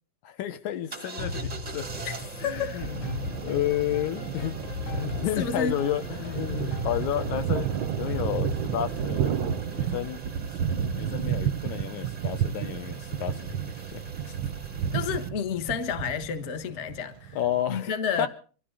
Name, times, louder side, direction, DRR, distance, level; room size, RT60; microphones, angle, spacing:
voice 1, 0.2-1.9 2.4-4.5 4.9-14.3 17.3-17.9 18.2-18.3, left 11 dB, 85° left, 2.6 m, -32 dB
sound 1, 0.9-15.3, right 3 dB, 50° right, 0.4 m, -43 dB
sound 2, 1.2-10.0, left 2 dB, 70° left, 4.7 m, -37 dB
voice 2, 2.4-2.8 5.4-5.7 14.9-17.4 17.7-18.3, left 6 dB, 50° left, 0.8 m, -30 dB
Thunder, 2.8-17.6, right 9 dB, 75° right, 1.1 m, -32 dB
24.0 x 14.5 x 3.8 m
omnidirectional pair, 3.4 m